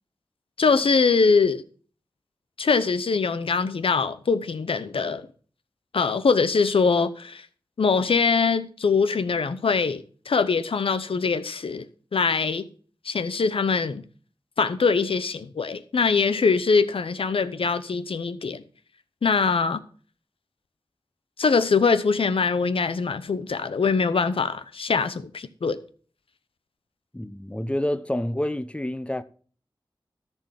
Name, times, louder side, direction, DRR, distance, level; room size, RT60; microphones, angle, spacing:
voice 1, 0.6-1.6 2.6-5.3 5.9-7.5 7.8-11.8 12.1-12.7 13.0-14.0 14.6-18.6 19.2-19.8 21.4-25.8, left 4 dB, 90° left, 0.8 m, -23 dB
voice 2, 27.1-29.2, left 1 dB, 15° left, 0.8 m, -28 dB
13.5 x 4.6 x 7.3 m
wide cardioid pair, 60°, 9 cm